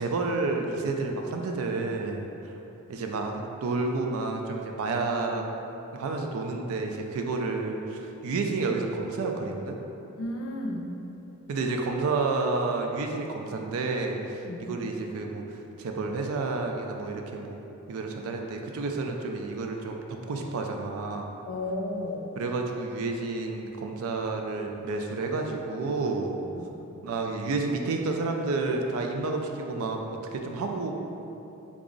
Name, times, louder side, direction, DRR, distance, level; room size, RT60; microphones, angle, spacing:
voice 1, 0.0-2.2 2.9-3.3 3.6-5.4 5.9-9.8 11.5-15.4 15.8-17.6 17.9-21.3 22.4-26.4 27.0-30.0 30.3-30.9, right 3 dB, 75° right, 3 dB, 0.3 m, -30 dB
voice 2, 10.2-10.9 14.4-14.7 21.5-22.2 26.6-26.7, left 1 dB, 70° left, 1 dB, 0.4 m, -33 dB
3.5 x 2.0 x 3.7 m, 3.0 s
head